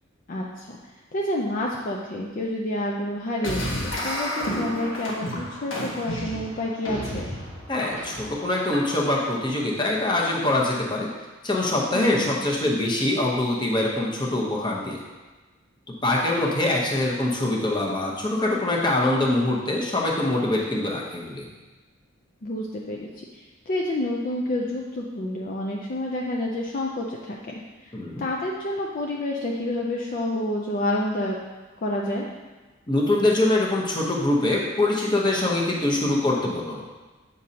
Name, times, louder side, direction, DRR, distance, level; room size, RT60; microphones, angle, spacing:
voice 1, 0.3-0.8 1.1-7.3 11.9-12.3 22.4-31.4 31.8-32.3, left 1 dB, 45° left, -2 dB, 0.5 m, -29 dB
sound 1, 3.4-9.2, equal, 75° left, 1.4 m, -31 dB
voice 2, 7.7-11.1 11.4-15.0 16.0-21.4 27.9-28.2 32.9-36.8, left 2 dB, 25° left, -2 dB, 0.9 m, -24 dB
7.7 x 5.2 x 2.8 m, 1.2 s
head